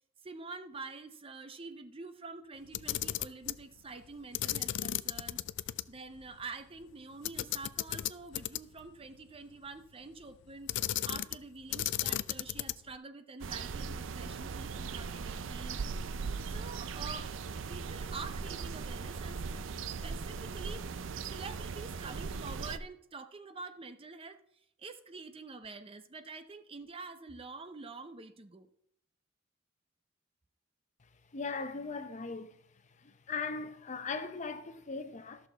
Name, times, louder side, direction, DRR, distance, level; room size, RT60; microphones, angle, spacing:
voice 1, 0.2-5.4 5.9-15.8 16.5-17.3 17.7-21.0 21.3-24.4 24.8-28.7, right 3 dB, 30° right, 0.6 m, -47 dB
Camera, 2.7-3.6 4.3-5.8 6.2-6.3 7.2-8.8 10.7-11.4 11.7-12.9, left 13 dB, 65° left, 0.4 m, -34 dB
sound 1, 13.4-22.8, right 5 dB, 75° right, 0.5 m, -39 dB
voice 2, 31.3-32.5 33.3-35.5, left 4 dB, 40° left, 0.7 m, -38 dB
13.5 x 6.4 x 4.0 m
head